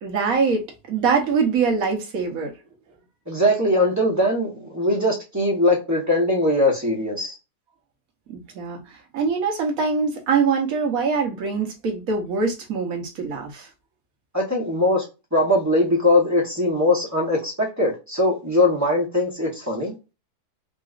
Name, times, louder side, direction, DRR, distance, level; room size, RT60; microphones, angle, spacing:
voice 1, 0.0-2.5 8.3-8.8 9.1-13.7, right 5 dB, 60° right, 1.2 m, -23 dB
voice 2, 3.3-7.3 14.3-15.0 15.3-19.9, left 1 dB, 15° right, 0.8 m, -21 dB
3.9 x 2.4 x 2.4 m
omnidirectional pair, 1.8 m